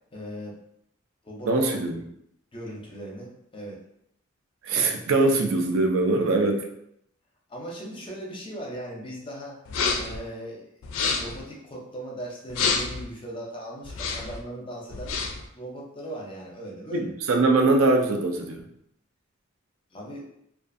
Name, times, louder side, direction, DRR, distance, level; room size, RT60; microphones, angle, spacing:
voice 1, 0.1-0.6 1.2-1.9 2.5-3.8 7.5-9.6 10.0-15.2 15.5-17.1 19.9-20.3, right 1 dB, 25° left, -2 dB, 0.5 m, -38 dB
voice 2, 1.5-2.0 4.6-6.7 16.9-18.6, right 2 dB, 85° right, 3 dB, 0.4 m, -22 dB
sound 1, 9.7-10.2 10.8-11.4 12.5-13.0 13.8-14.4 14.9-15.5, left 4 dB, 80° left, 0.4 m, -28 dB
2.4 x 2.3 x 2.5 m, 0.75 s
head